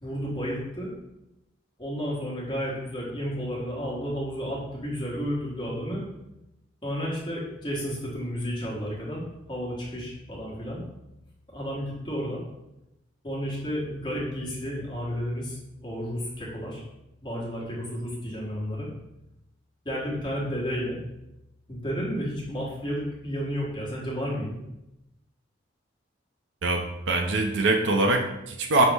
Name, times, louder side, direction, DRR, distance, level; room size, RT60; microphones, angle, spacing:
voice 1, 0.0-0.9 1.8-6.1 6.8-10.8 11.5-12.4 13.2-16.8 17.2-18.9 19.8-21.0 21.7-24.6, equal, 25° left, -5 dB, 1.2 m, -32 dB
voice 2, 26.6-28.8, right 2 dB, 75° right, 3 dB, 0.5 m, -23 dB
6.0 x 2.0 x 3.4 m, 0.90 s
head